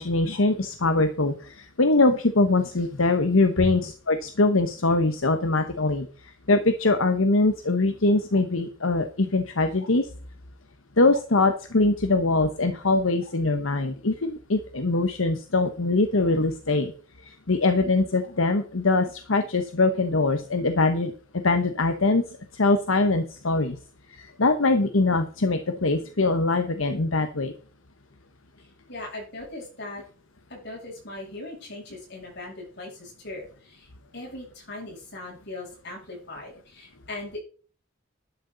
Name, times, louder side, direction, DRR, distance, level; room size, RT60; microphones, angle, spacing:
voice 1, 0.0-10.1 11.0-16.9 17.2-23.8 24.1-27.5, left 2 dB, 80° left, 7 dB, 1.2 m, -23 dB
voice 2, 28.9-30.0 30.5-37.4, left 2 dB, 55° left, -1 dB, 7.4 m, -38 dB
12.0 x 11.5 x 4.0 m, 0.41 s
head